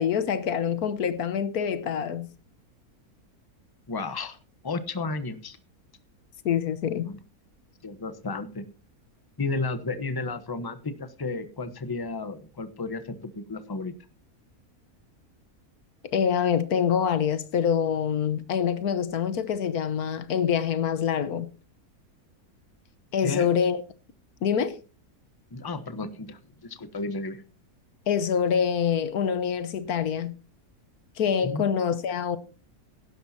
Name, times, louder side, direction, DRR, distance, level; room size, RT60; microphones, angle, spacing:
voice 1, 0.0-2.3 6.4-7.1 16.0-21.5 23.1-23.8 24.4-24.8 28.1-30.3 31.2-32.4, left 7 dB, 75° left, 1.4 m, -25 dB
voice 2, 3.9-4.4 4.6-5.6 7.0-7.2 7.8-8.7 9.4-13.9 23.2-23.5 25.5-27.4 31.4-31.6, left 3 dB, 15° left, 1.0 m, -33 dB
16.5 x 12.0 x 2.8 m
omnidirectional pair, 1.6 m